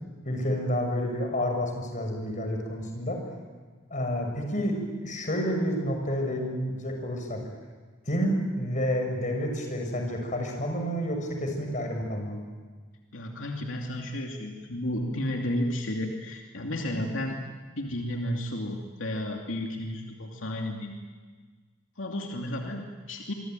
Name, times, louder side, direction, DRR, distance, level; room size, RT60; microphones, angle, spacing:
voice 1, 0.2-3.2 3.9-7.4 8.1-12.4, equal, 40° left, 3 dB, 6.3 m, -29 dB
voice 2, 13.1-17.4 17.8-20.9 22.0-23.3, left 1 dB, 85° left, 1 dB, 2.7 m, -32 dB
27.0 x 24.0 x 9.2 m, 1.5 s
head